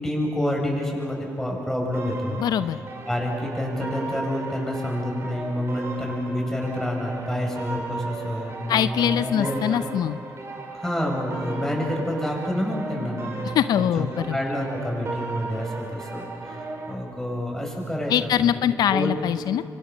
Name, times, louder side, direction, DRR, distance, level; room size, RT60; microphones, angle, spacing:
voice 1, 0.0-2.4 3.1-9.8 10.7-13.3 13.7-14.1 14.3-16.6 16.9-18.6 18.9-19.1, left 1 dB, 5° left, 0 dB, 7.7 m, -28 dB
sound 1, 1.9-16.9, right 3 dB, 40° right, 5.4 m, -36 dB
voice 2, 2.4-2.8 8.7-10.2 13.4-14.4 18.1-19.6, left 10 dB, 70° left, 13 dB, 0.5 m, -23 dB
26.5 x 24.5 x 7.2 m, 2.6 s
cardioid pair, 80°, 7 cm